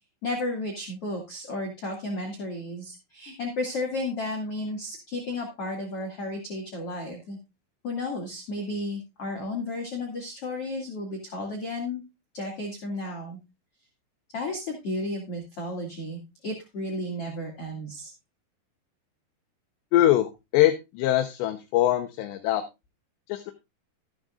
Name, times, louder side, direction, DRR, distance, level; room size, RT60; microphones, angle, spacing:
voice 1, 0.2-7.4 7.8-12.0 12.3-13.4 14.3-18.1, left 1 dB, 40° left, 0 dB, 2.7 m, -33 dB
voice 2, 19.9-22.6 23.3-23.5, left 13 dB, 80° left, 5 dB, 3.2 m, -23 dB
14.0 x 11.5 x 2.5 m, 0.25 s
omnidirectional pair, 5.0 m